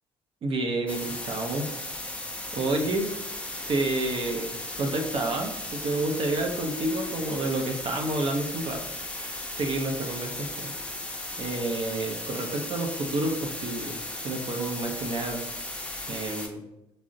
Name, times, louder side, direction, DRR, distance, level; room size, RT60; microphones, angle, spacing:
voice 1, 0.4-1.7 2.5-3.1 3.7-8.8 9.6-10.7 11.4-14.0 14.2-15.4 16.1-16.6, right 2 dB, 55° right, 2 dB, 0.6 m, -29 dB
sound 1, 0.9-16.5, left 1 dB, 10° left, 0.6 m, -36 dB
3.6 x 2.0 x 2.5 m, 0.93 s
supercardioid pair, 75°, 11 cm